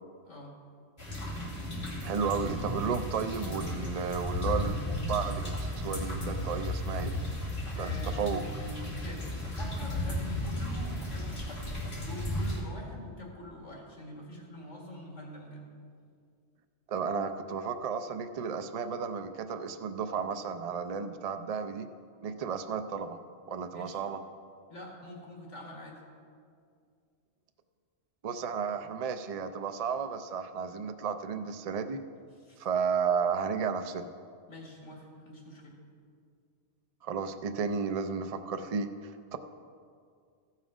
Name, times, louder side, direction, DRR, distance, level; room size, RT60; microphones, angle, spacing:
sound 1, 1.0-12.6, left 1 dB, 45° left, 2.3 m, -34 dB
voice 1, 2.0-7.1 7.8-8.4 16.9-21.9 22.2-23.2 23.5-24.2 28.2-32.0 32.6-34.1 37.0-39.4, right 6 dB, 60° right, 8 dB, 0.4 m, -33 dB
voice 2, 7.7-11.6 11.9-15.6 23.7-24.0 24.7-26.0 32.5-32.7 34.5-35.8, left 1 dB, 85° left, -1 dB, 2.2 m, -45 dB
15.5 x 5.8 x 4.9 m, 2.2 s
omnidirectional pair, 1.2 m